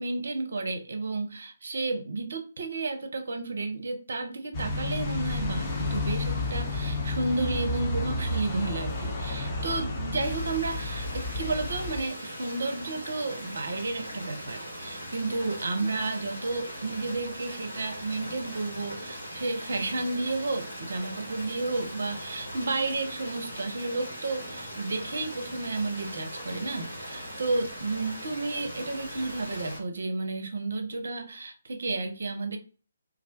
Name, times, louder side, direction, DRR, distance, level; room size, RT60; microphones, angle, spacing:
voice 1, 0.0-32.6, right 3 dB, 60° right, 7 dB, 0.5 m, -32 dB
sound 1, 4.5-12.0, left 2 dB, 25° left, 0.5 m, -31 dB
sound 2, 10.2-29.8, equal, 75° left, 1.2 m, -40 dB
2.3 x 2.1 x 2.5 m, 0.37 s
figure-of-eight pair, 140°, 0 cm